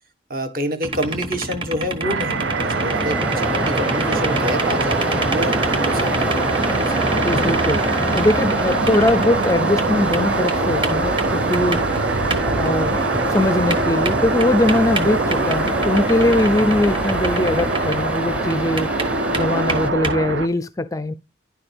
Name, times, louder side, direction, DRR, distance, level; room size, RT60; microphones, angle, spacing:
voice 1, 0.3-7.0 7.4-7.7 15.4-15.6, equal, 45° right, 1.6 m, -28 dB
sound 1, 0.8-9.9 10.1-12.0 12.3-12.7 13.0-13.1 13.4-13.5 13.7-18.2 18.5-20.2, right 2 dB, 25° right, 1.5 m, -28 dB
sound 2, 2.0-20.5, right 3 dB, 70° right, 0.7 m, -23 dB
sound 3, 2.1-19.9, equal, 5° right, 0.8 m, -26 dB
voice 2, 7.2-13.0 13.3-18.9 19.4-21.1, left 1 dB, 15° left, 0.4 m, -21 dB
10.5 x 7.0 x 3.5 m
head